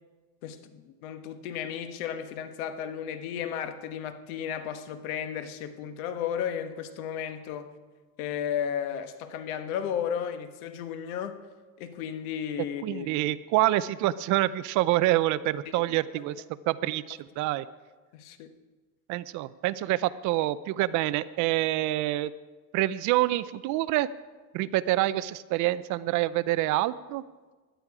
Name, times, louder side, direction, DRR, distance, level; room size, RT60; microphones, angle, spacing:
voice 1, 0.4-7.7 8.2-11.4 11.8-13.3 15.7-16.0 18.1-18.5, left 8 dB, 90° left, 1.4 m, -34 dB
voice 2, 12.8-16.4 16.7-17.7 19.1-22.3 22.7-24.1 24.5-27.2, right 16 dB, 45° right, 0.5 m, -26 dB
17.0 x 11.5 x 4.8 m
cardioid pair, 155°, 41 cm